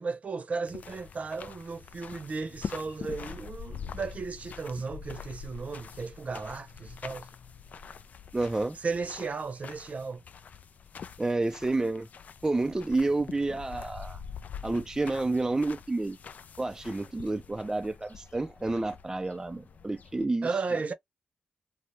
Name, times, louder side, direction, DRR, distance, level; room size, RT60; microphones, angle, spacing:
voice 1, 0.0-7.3 8.8-10.2 20.4-20.9, right 4 dB, 50° right, 0.7 m, -35 dB
sound 1, 0.7-20.3, left 6 dB, 60° left, 0.4 m, -45 dB
voice 2, 8.3-8.8 11.2-12.1 12.4-14.2 14.6-16.2 16.6-20.6, right 2 dB, 20° right, 0.4 m, -29 dB
2.6 x 2.0 x 3.0 m
cardioid pair, 60°, 3 cm